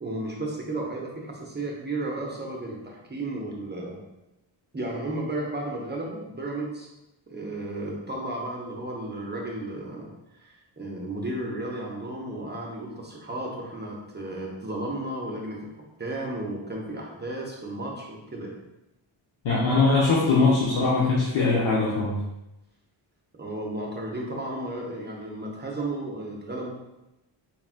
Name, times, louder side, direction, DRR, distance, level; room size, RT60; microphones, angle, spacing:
voice 1, 0.0-4.0 4.7-6.9 7.3-15.7 16.0-18.5 23.4-26.7, right 2 dB, 25° right, -2 dB, 0.5 m, -33 dB
voice 2, 19.4-22.2, left 3 dB, 85° left, -6 dB, 0.7 m, -21 dB
3.6 x 2.2 x 2.4 m, 0.95 s
cardioid pair, 70°, 47 cm